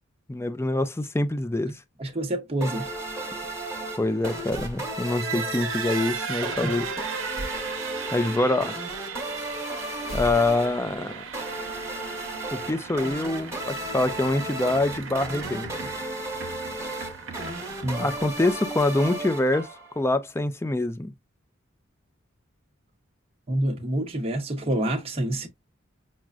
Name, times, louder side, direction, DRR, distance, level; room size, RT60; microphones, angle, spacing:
voice 1, 0.3-1.8 4.0-6.9 8.1-8.7 10.1-11.2 12.5-15.7 18.0-19.7 20.0-21.1, left 2 dB, 15° left, 0.4 m, -25 dB
voice 2, 2.0-2.9 6.6-6.7 17.8-18.1 23.5-25.5, right 1 dB, 30° right, 0.8 m, -27 dB
sound 1, 2.6-20.0, right 1 dB, 15° right, 1.3 m, -34 dB
sound 2, 4.5-4.9 7.4-7.7 10.1-10.9, equal, 80° left, 1.3 m, -36 dB
sound 3, 5.0-18.5, right 6 dB, 75° right, 0.8 m, -37 dB
6.0 x 2.1 x 2.4 m
head